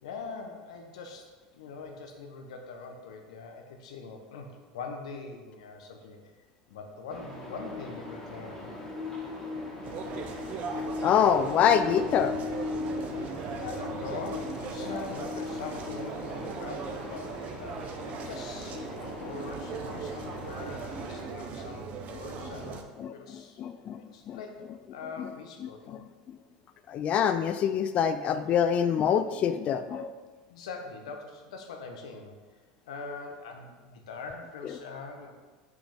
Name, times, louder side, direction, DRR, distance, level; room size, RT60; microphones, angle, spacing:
voice 1, 0.0-8.7 13.6-22.8 23.1-23.6 24.0-26.0 30.5-32.4 32.9-35.3, left 4 dB, 85° left, 4 dB, 0.9 m, -42 dB
sound 1, 7.1-21.2, left 3 dB, 15° left, 1.9 m, -38 dB
sound 2, 9.8-22.8, right 5 dB, 45° right, 0.6 m, -39 dB
voice 2, 11.0-12.3 23.0-23.1 23.6-24.0 24.3-24.4 25.9-26.0 26.9-30.1, left 8 dB, 45° left, 11 dB, 0.4 m, -25 dB
5.9 x 5.2 x 3.5 m, 1.3 s
supercardioid pair, 105°, 3 cm